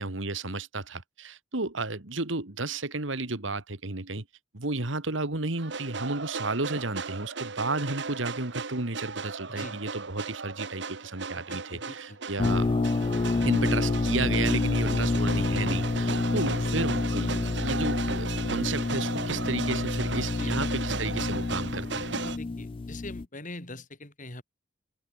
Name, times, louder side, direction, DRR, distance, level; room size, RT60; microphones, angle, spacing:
voice 1, 0.0-4.2 4.5-12.7 13.4-22.1, right 3 dB, 80° right, 2.2 m, -33 dB
sound 1, 5.6-22.4, right 4 dB, 65° right, 1.4 m, -36 dB
voice 2, 9.5-9.8 11.3-12.2 16.3-16.4 20.4-20.8 22.2-24.4, left 2 dB, 40° left, 6.1 m, -43 dB
sound 2, 12.4-23.2, left 3 dB, 25° left, 0.3 m, -28 dB
head